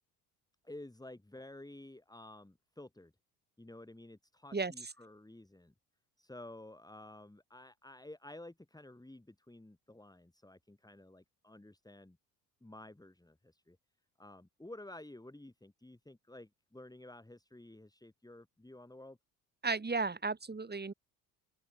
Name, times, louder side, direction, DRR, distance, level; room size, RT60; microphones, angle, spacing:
voice 1, 0.6-3.1 3.6-5.7 6.2-12.2 12.6-13.8 14.2-19.2, left 1 dB, 10° left, 7.6 m, -52 dB
voice 2, 19.6-20.9, right 4 dB, 20° right, 5.4 m, -34 dB
open air
figure-of-eight pair, 55°, 46 cm